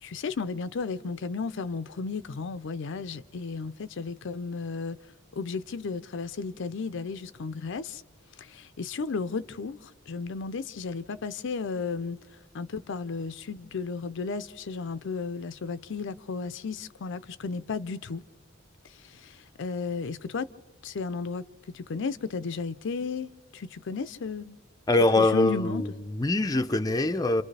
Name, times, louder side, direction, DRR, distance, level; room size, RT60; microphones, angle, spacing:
voice 1, 0.0-5.0 5.3-8.0 8.4-12.2 12.5-18.2 18.8-20.5 20.8-24.6 25.2-25.8, left 4 dB, 65° left, 0.5 m, -34 dB
voice 2, 24.9-27.4, left 2 dB, 20° left, 0.5 m, -24 dB
29.5 x 27.0 x 3.3 m
head